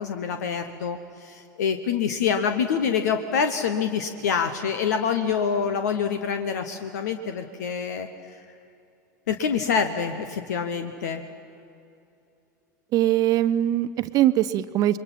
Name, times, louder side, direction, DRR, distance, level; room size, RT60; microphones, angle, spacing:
voice 1, 0.0-8.1 9.3-11.2, left 6 dB, 65° left, 8 dB, 1.1 m, -26 dB
voice 2, 12.9-15.0, right 13 dB, 40° right, 14 dB, 0.7 m, -21 dB
28.5 x 22.5 x 5.8 m, 2.6 s
figure-of-eight pair, 80°, 10 cm